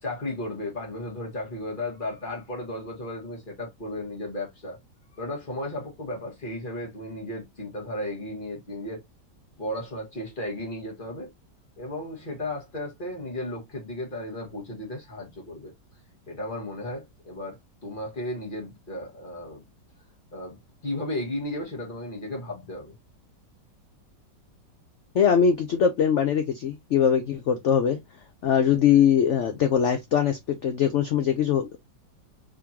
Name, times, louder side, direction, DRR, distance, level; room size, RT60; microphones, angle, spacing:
voice 1, 0.0-4.8 5.2-9.0 9.6-11.3 11.8-15.7 16.3-19.6 20.3-20.6 20.8-22.9, left 1 dB, 30° left, 1.7 m, -34 dB
voice 2, 25.1-28.0 28.4-31.8, left 8 dB, 80° left, 0.6 m, -22 dB
3.7 x 3.6 x 2.8 m
omnidirectional pair, 1.9 m